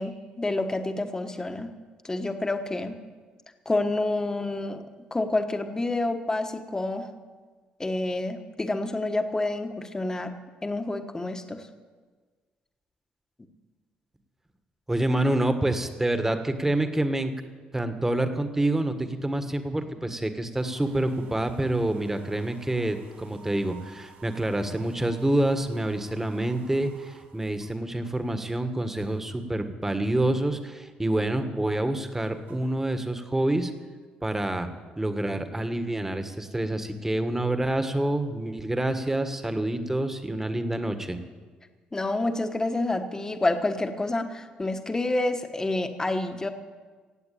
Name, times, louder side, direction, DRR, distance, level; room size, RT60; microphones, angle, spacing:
voice 1, 0.0-1.7 2.0-3.0 3.6-4.8 5.1-7.1 7.8-10.4 10.6-11.7 41.9-46.5, left 2 dB, 20° left, 7 dB, 1.3 m, -28 dB
voice 2, 14.9-17.3 17.7-33.7 34.2-34.7 35.0-41.2, right 1 dB, 10° right, 8 dB, 1.5 m, -27 dB
sound 1, 20.5-29.4 29.8-30.4 30.8-32.8, right 5 dB, 70° right, 3.0 m, -54 dB
17.0 x 7.9 x 8.6 m, 1.4 s
cardioid pair, 75°, 3 cm